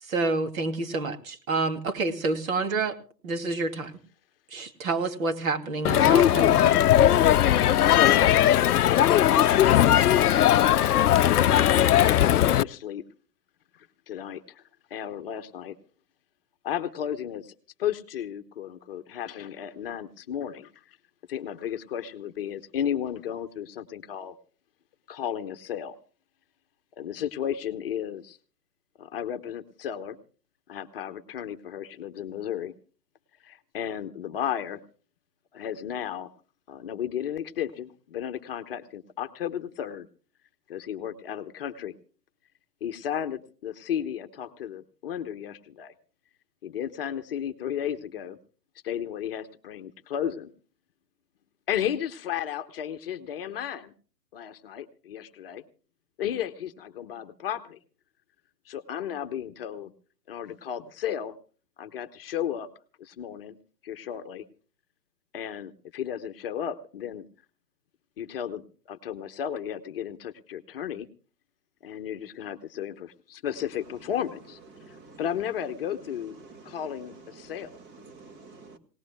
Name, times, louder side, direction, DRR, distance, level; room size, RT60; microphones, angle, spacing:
voice 1, 0.0-3.0 3.2-3.9 4.5-6.7, right 3 dB, 55° right, 7 dB, 2.7 m, -28 dB
Crowd, 5.8-12.6, left 11 dB, 65° left, 0.6 m, -19 dB
voice 2, 6.5-6.9 7.8-8.4 8.8-11.9 12.2-13.0 13.7-14.6 14.9-15.8 16.6-17.5 17.8-21.0 21.3-24.3 25.1-26.0 27.0-28.4 29.0-30.2 30.7-32.7 33.4-34.8 35.5-36.3 36.7-40.1 40.7-41.9 42.8-45.9 46.6-48.4 48.8-50.5 51.7-53.9 54.3-55.6 56.2-57.8 58.7-59.9 60.3-61.3 61.8-62.7 63.0-63.6 63.8-64.4 65.3-67.3 68.2-68.6 68.9-71.1 71.8-74.6 74.9-76.4 76.6-77.8, left 9 dB, 35° left, 8 dB, 1.0 m, -34 dB
voice 3, 73.5-78.8, right 3 dB, 30° right, 8 dB, 2.2 m, -50 dB
26.0 x 18.5 x 2.2 m, 0.40 s
hypercardioid pair, 140°, 49 cm